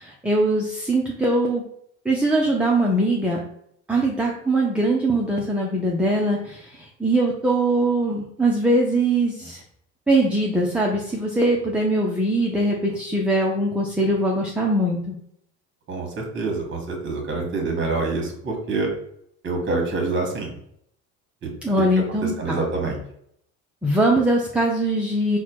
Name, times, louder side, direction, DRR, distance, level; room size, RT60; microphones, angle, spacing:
voice 1, 0.0-1.6 2.0-3.4 3.9-9.6 10.1-15.2 21.6-22.6 23.8-25.4, right 1 dB, 5° right, -2 dB, 0.6 m, -21 dB
voice 2, 15.9-18.9 19.4-20.5 21.4-21.5 22.2-23.0, right 3 dB, 35° right, 2 dB, 1.5 m, -26 dB
4.2 x 2.3 x 4.4 m, 0.71 s
supercardioid pair, 105°, 32 cm